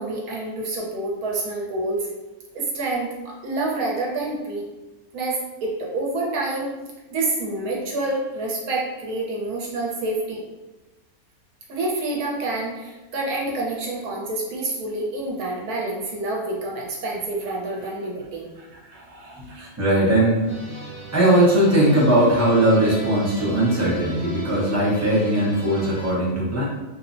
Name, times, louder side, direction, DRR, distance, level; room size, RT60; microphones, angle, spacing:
voice 1, 0.0-2.1 2.5-4.6 5.1-6.7 7.1-10.4 11.7-19.7, right 2 dB, 80° right, -3 dB, 1.2 m, -28 dB
voice 2, 19.8-20.5 21.1-26.6, right 1 dB, 20° right, -8 dB, 0.5 m, -19 dB
sound 1, 20.5-26.1, right 1 dB, 50° left, 0.3 m, -38 dB
3.2 x 2.1 x 2.5 m, 1.1 s
omnidirectional pair, 1.6 m